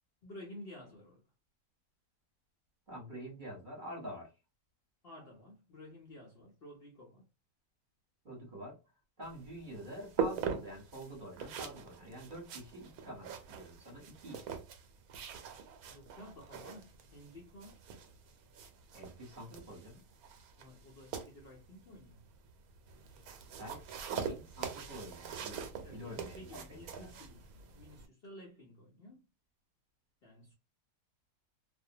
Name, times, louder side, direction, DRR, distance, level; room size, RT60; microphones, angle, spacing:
voice 1, 0.2-1.2 5.0-7.3 15.9-17.9 20.5-22.3 25.8-29.2 30.2-30.5, left 1 dB, 55° left, 0.7 m, -53 dB
voice 2, 2.9-4.3 8.2-8.8 9.2-14.6 18.9-20.0 23.6-23.9 24.1-27.2, equal, 35° right, 1.1 m, -47 dB
sound 1, 9.2-28.1, right 7 dB, 85° right, 1.1 m, -43 dB
2.5 x 2.1 x 2.7 m
omnidirectional pair, 1.5 m